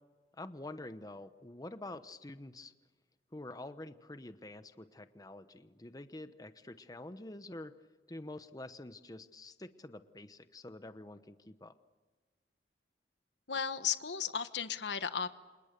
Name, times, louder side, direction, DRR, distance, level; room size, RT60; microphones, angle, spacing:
voice 1, 0.3-2.7 3.3-7.7 8.1-11.7, left 2 dB, 20° left, 11 dB, 1.0 m, -47 dB
voice 2, 13.5-15.3, left 7 dB, 90° left, 11 dB, 1.3 m, -35 dB
29.5 x 27.0 x 6.9 m, 1.4 s
head